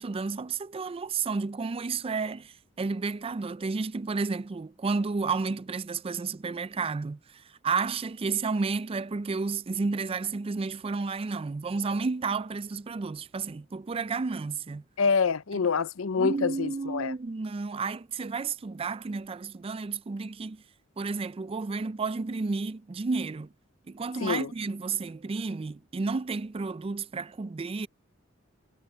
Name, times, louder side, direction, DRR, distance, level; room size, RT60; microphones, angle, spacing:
voice 1, 0.0-14.8 15.5-15.6 16.2-20.6 21.0-23.5 23.9-27.9, right 4 dB, 30° right, 0.4 m, -31 dB
voice 2, 15.0-17.1 24.2-24.5, left 5 dB, 80° left, 0.7 m, -26 dB
head